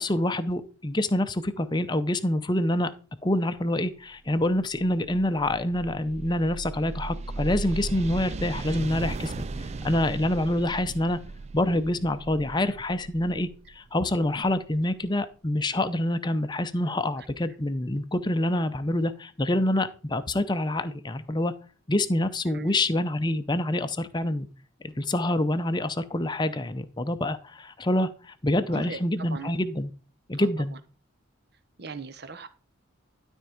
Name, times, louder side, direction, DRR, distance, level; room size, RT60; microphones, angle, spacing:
voice 1, 0.0-2.9 3.2-9.4 9.8-11.2 11.5-13.5 13.8-21.5 21.9-24.4 24.8-29.9 30.3-30.7, left 1 dB, 20° left, 0.6 m, -26 dB
sound 1, 4.4-15.1, right 3 dB, 30° right, 0.4 m, -37 dB
voice 2, 28.7-29.0 29.3-29.5 30.3-30.8 31.8-32.5, right 3 dB, 50° right, 0.9 m, -39 dB
12.0 x 4.5 x 5.1 m
head